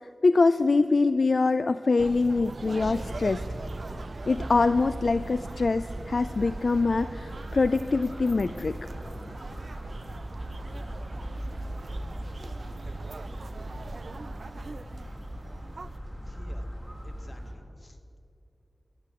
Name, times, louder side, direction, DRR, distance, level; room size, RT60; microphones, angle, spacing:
voice 1, 0.2-3.4 4.3-8.8, left 3 dB, 65° left, 12 dB, 0.3 m, -24 dB
sound 1, 2.0-16.0, right 3 dB, 65° right, 0.3 m, -41 dB
sound 2, 2.8-17.5, equal, 10° left, 2.3 m, -39 dB
voice 2, 16.2-16.7 17.0-18.0, left 1 dB, 40° left, 6 dB, 1.3 m, -52 dB
11.5 x 11.5 x 7.6 m, 2.7 s
wide cardioid pair, 70°, 0 cm